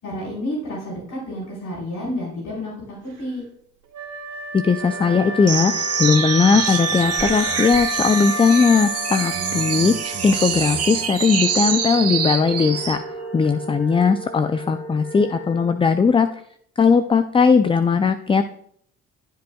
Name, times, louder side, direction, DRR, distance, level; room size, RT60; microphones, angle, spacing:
voice 1, 0.0-3.4, left 1 dB, 75° left, -5 dB, 4.3 m, -30 dB
Wind instrument woodwind instrument, 3.9-10.9, right 1 dB, 85° right, 2.5 m, -30 dB
voice 2, 4.5-13.0 13.3-16.3 16.8-18.5, left 5 dB, 20° left, 10 dB, 0.4 m, -18 dB
sound 1, 4.8-15.7, right 1 dB, 40° left, 2.2 m, -36 dB
sound 2, 5.5-13.0, right 7 dB, 55° right, 1.3 m, -25 dB
14.5 x 7.7 x 2.3 m, 0.65 s
cardioid pair, 90°, 30 cm